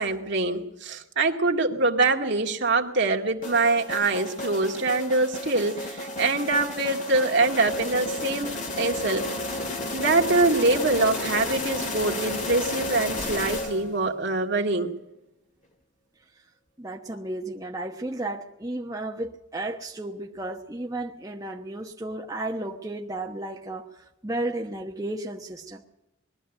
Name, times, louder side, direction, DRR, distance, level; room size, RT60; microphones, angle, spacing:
voice 1, 0.0-9.3 9.9-14.9, right 3 dB, 55° right, 2 dB, 2.1 m, -24 dB
sound 1, 3.4-14.1, left 2 dB, 35° left, 2.1 m, -32 dB
Explosion, 13.1-14.2, equal, 5° left, 1.6 m, -44 dB
voice 2, 16.8-25.9, right 1 dB, 15° right, 0 dB, 1.1 m, -33 dB
21.5 x 13.0 x 9.1 m, 0.85 s
head